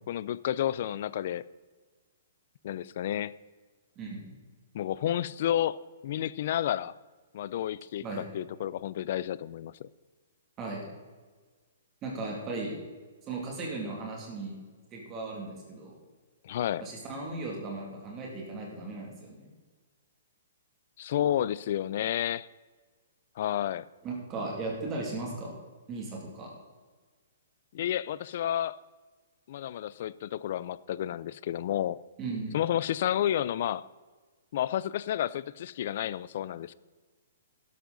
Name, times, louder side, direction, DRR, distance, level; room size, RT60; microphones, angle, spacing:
voice 1, 0.1-1.4 2.6-3.3 4.7-5.8 6.0-6.9 7.3-9.9 16.4-16.9 21.0-22.5 23.4-23.9 27.7-28.8 29.5-32.0 32.5-33.8 34.5-36.7, left 11 dB, 35° left, 19 dB, 0.3 m, -31 dB
voice 2, 12.0-12.8 13.3-14.5 14.9-15.9 16.8-19.5 24.0-25.5 25.9-26.5 32.2-32.5, right 3 dB, 15° right, -2 dB, 2.4 m, -36 dB
12.0 x 11.5 x 3.9 m, 1.4 s
hypercardioid pair, 180°, 0 cm